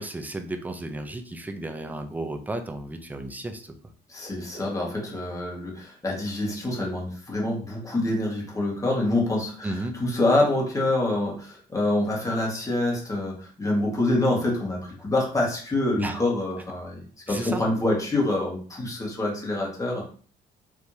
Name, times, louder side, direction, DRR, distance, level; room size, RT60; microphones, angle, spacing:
voice 1, 0.0-3.7 9.6-10.0 16.0-16.2 17.3-17.7, right 2 dB, 10° right, 6 dB, 0.6 m, -33 dB
voice 2, 4.1-9.7 10.0-17.0 17.3-20.1, left 2 dB, 20° left, -2 dB, 1.8 m, -26 dB
4.8 x 3.3 x 2.9 m, 0.42 s
cardioid pair, 110°, 17 cm